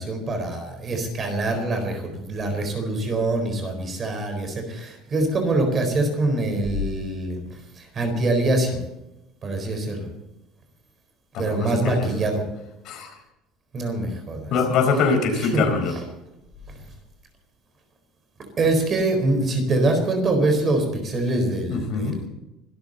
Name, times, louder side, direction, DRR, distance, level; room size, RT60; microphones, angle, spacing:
voice 1, 0.0-7.4 7.8-8.8 9.4-10.1 11.4-12.4 13.7-14.5 15.5-15.6 16.7-16.8 18.6-22.3, right 2 dB, 25° right, 5 dB, 4.2 m, -24 dB
voice 2, 11.3-12.1 12.8-13.2 14.5-15.9 21.7-22.2, left 4 dB, 50° left, 5 dB, 4.3 m, -23 dB
25.0 x 13.5 x 4.1 m, 0.92 s
cardioid pair, 170°, 0 cm